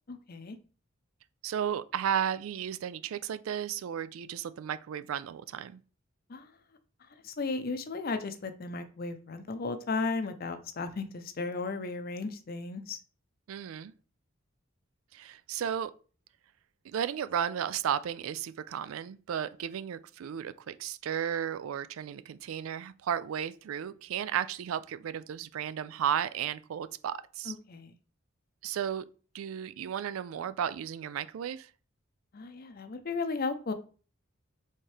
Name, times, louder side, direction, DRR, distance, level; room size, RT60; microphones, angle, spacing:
voice 1, 1.4-5.8 13.5-13.9 15.1-15.9 16.8-27.6 28.6-29.1 29.3-31.7, right 9 dB, 90° right, 0.3 m, -34 dB
voice 2, 7.2-13.0 27.5-27.9 32.3-33.7, left 3 dB, 50° left, 0.6 m, -35 dB
4.4 x 3.6 x 3.2 m
head